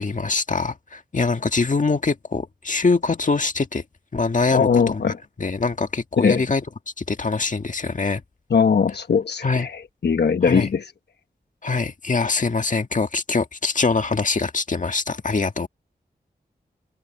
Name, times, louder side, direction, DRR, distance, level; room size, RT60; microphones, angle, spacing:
voice 1, 0.0-3.8 4.1-5.0 5.4-6.6 7.0-8.2 9.4-9.7 10.4-10.7 11.6-15.7, left 4 dB, 50° left, 1.6 m, -23 dB
voice 2, 4.5-5.2 6.2-6.4 8.5-10.9, left 6 dB, 85° left, 1.1 m, -20 dB
wide cardioid pair, 85°, 17 cm